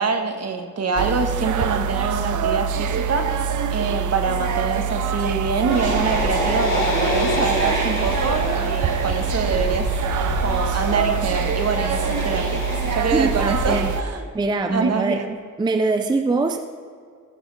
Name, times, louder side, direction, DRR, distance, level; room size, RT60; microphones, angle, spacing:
voice 1, 0.0-3.3 3.7-9.9 10.4-12.6 12.9-14.3 14.7-15.4, right 5 dB, 55° right, 5 dB, 1.2 m, -25 dB
sound 1, 1.0-14.0, right 6 dB, 75° right, 0.6 m, -24 dB
sound 2, 5.7-14.0, left 2 dB, 40° left, 2.6 m, -28 dB
voice 2, 13.1-13.9 14.3-15.2 15.6-16.6, right 3 dB, 15° right, 7 dB, 0.4 m, -22 dB
15.0 x 5.7 x 5.5 m, 2.1 s
wide cardioid pair, 160°, 30 cm